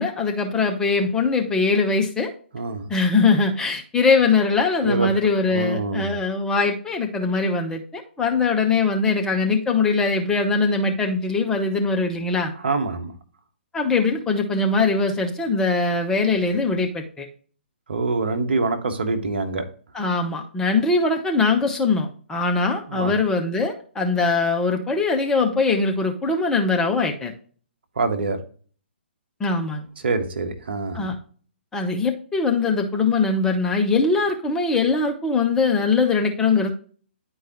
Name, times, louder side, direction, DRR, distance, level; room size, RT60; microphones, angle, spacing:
voice 1, 0.0-2.3 2.9-12.5 13.7-17.3 19.9-27.3 29.4-29.8 30.9-31.1 31.7-36.7, left 4 dB, 10° left, 2 dB, 0.8 m, -21 dB
voice 2, 2.5-2.9 4.8-5.1 5.5-6.1 12.6-13.1 17.9-19.6 22.9-23.1 28.0-28.4 30.0-31.1, right 3 dB, 60° right, 6 dB, 1.2 m, -25 dB
10.0 x 4.7 x 3.0 m, 0.43 s
figure-of-eight pair, 130°, 6 cm